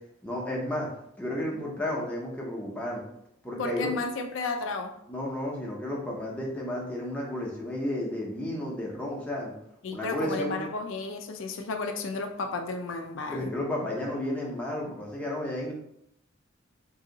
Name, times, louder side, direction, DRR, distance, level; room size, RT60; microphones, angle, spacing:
voice 1, 0.2-0.9 1.2-3.0 3.4-3.9 5.1-9.5 9.9-10.7 13.3-15.7, left 1 dB, 5° left, -3 dB, 0.6 m, -32 dB
voice 2, 3.6-4.9 9.8-13.5, left 3 dB, 70° left, 5 dB, 0.4 m, -33 dB
2.7 x 2.6 x 3.8 m, 0.75 s
head